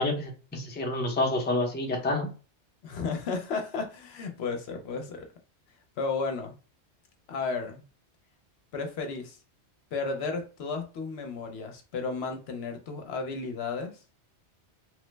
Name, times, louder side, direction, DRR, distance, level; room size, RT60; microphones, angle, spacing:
voice 1, 0.0-2.3, left 2 dB, 15° left, 0.5 m, -28 dB
voice 2, 2.8-5.3 6.0-6.6 7.3-7.8 8.7-9.4 9.9-14.0, left 4 dB, 70° left, 0.8 m, -33 dB
3.1 x 2.0 x 3.2 m
omnidirectional pair, 1.2 m